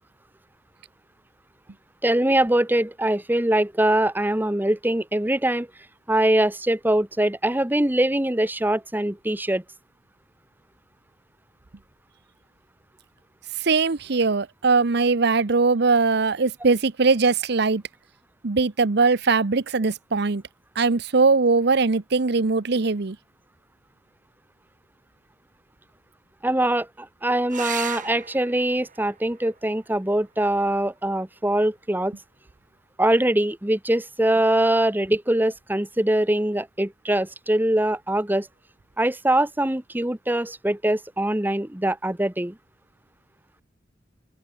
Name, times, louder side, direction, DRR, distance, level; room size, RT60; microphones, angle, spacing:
voice 1, 2.0-5.7 6.1-9.6 26.4-32.1 33.0-38.5 39.0-42.5, right 1 dB, 10° right, 1.1 m, -23 dB
voice 2, 13.7-17.8 18.4-20.4 20.8-23.2, right 4 dB, 60° right, 0.8 m, -21 dB
sound 1, 27.5-32.5 34.4-35.0 38.5-38.6 38.9-39.0, right 8 dB, 45° right, 7.6 m, -40 dB
open air
head